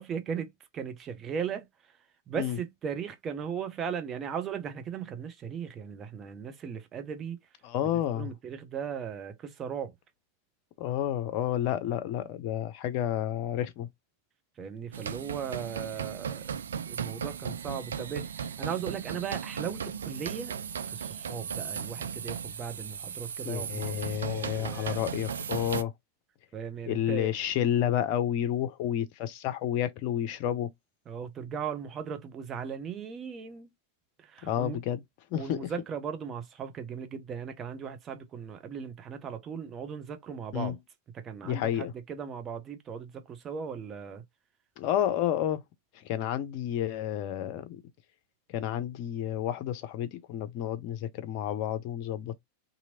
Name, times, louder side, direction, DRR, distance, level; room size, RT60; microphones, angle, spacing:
voice 1, 0.0-1.7 2.3-7.4 8.1-9.9 14.6-16.6 16.9-20.5 20.8-25.0 26.5-27.3 31.1-33.7 34.2-34.8 35.3-40.8 41.1-44.2, right 7 dB, 25° right, 0.7 m, -37 dB
voice 2, 7.6-8.3 10.8-13.9 23.4-25.9 26.9-30.7 34.4-35.0 35.3-35.7 40.5-40.7 41.4-41.9 44.8-45.6 45.9-47.8 48.5-52.4, left 11 dB, 45° left, 0.6 m, -30 dB
sound 1, 14.9-25.8, right 7 dB, 65° right, 0.3 m, -36 dB
2.9 x 2.7 x 2.7 m
figure-of-eight pair, 90°, 0 cm